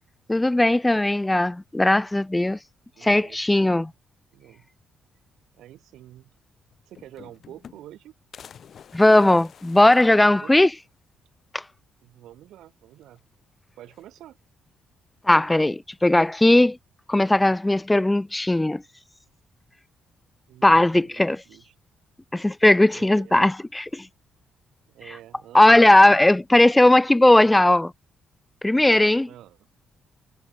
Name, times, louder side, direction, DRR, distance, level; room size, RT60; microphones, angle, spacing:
voice 1, 0.3-2.6 3.0-3.9 8.9-10.7 11.5-11.6 15.3-16.8 17.1-18.8 20.6-21.4 22.3-24.1 25.5-27.9 28.6-29.3, left 1 dB, 10° left, 0.3 m, -18 dB
voice 2, 3.0-3.9 4.3-4.7 5.5-6.3 6.8-8.1 10.0-10.5 12.0-13.2 13.8-14.4 20.5-21.8 22.9-23.5 24.9-26.0 29.3-29.7, right 13 dB, 80° right, 5.2 m, -47 dB
sound 1, 6.4-6.5 6.7-8.0 8.3-10.9 11.3-11.4 11.7-11.8 13.0-13.4 13.8-14.5 15.6-16.1, left 8 dB, 55° left, 7.6 m, -50 dB
cardioid pair, 90°, 0 cm